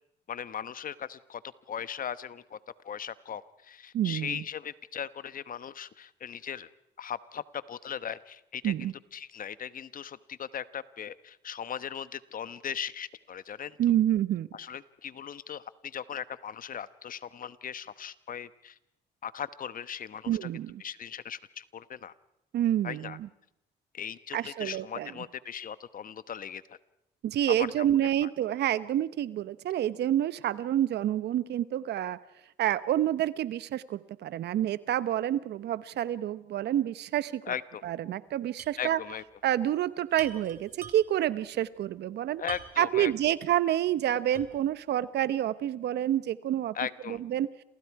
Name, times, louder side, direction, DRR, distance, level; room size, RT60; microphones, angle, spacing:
voice 1, 0.3-1.4 1.7-2.6 2.8-6.7 7.0-8.7 9.1-13.8 14.5-18.7 19.2-20.5 20.8-22.1 22.8-23.2 23.9-26.8 27.5-27.9 28.2-28.3 37.5-37.8 38.8-39.2 42.4-43.1 46.7-47.2, left 8 dB, 50° left, 15 dB, 1.1 m, -38 dB
voice 2, 3.9-4.4 8.6-8.9 13.8-14.5 20.3-20.8 22.5-23.3 24.3-25.1 27.2-32.2 32.6-37.4 37.8-39.0 39.4-42.4 42.8-46.8 47.1-47.5, right 12 dB, 70° right, 15 dB, 1.1 m, -28 dB
sound 1, 38.6-38.8 39.1-39.2 40.1-41.3 42.5-43.0 43.5-43.6 44.3-44.7, right 8 dB, 55° right, 2.7 m, -44 dB
29.0 x 27.5 x 4.8 m, 0.82 s
supercardioid pair, 75°, 18 cm